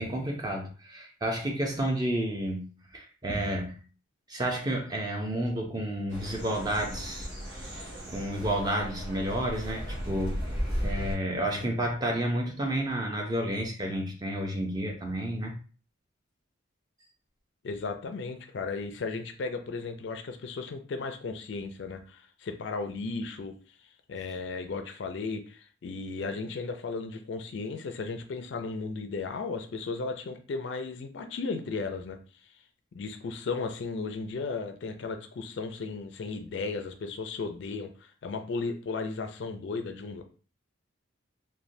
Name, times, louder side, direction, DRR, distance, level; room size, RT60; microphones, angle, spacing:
voice 1, 0.0-3.7 4.3-7.3 8.1-10.4 10.8-15.5, right 1 dB, 20° right, 1 dB, 0.5 m, -31 dB
sound 1, 6.1-11.2, equal, 60° right, 1.0 m, -35 dB
voice 2, 17.6-23.5 24.1-32.2 32.9-40.2, left 4 dB, 60° left, 6 dB, 0.4 m, -35 dB
3.1 x 2.1 x 2.6 m, 0.38 s
head